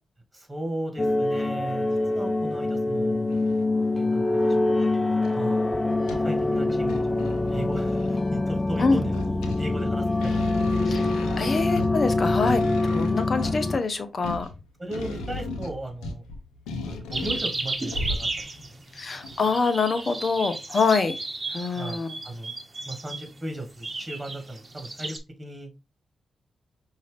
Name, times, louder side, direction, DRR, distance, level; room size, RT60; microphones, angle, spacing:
voice 1, 0.3-3.4 3.9-4.7 5.3-5.7 6.2-11.2 14.8-16.2 16.8-18.8 21.7-22.5 22.9-25.7, right 1 dB, 20° right, 4 dB, 1.9 m, -36 dB
sound 1, 1.0-13.8, left 2 dB, 25° left, 0.5 m, -25 dB
sound 2, 1.4-1.5 2.1-2.2 3.3-3.7 4.3-4.8 5.2-5.3 5.6-6.4 6.8-8.3 8.9-18.7 19.2-19.4, left 2 dB, 90° left, 0.8 m, -36 dB
voice 2, 10.9-14.5 18.9-21.1 21.5-22.1, left 4 dB, 50° left, 10 dB, 0.9 m, -25 dB
sound 3, 17.1-25.2, right 2 dB, 35° right, 1.0 m, -34 dB
5.4 x 2.8 x 3.4 m, 0.27 s
supercardioid pair, 40°, 0 cm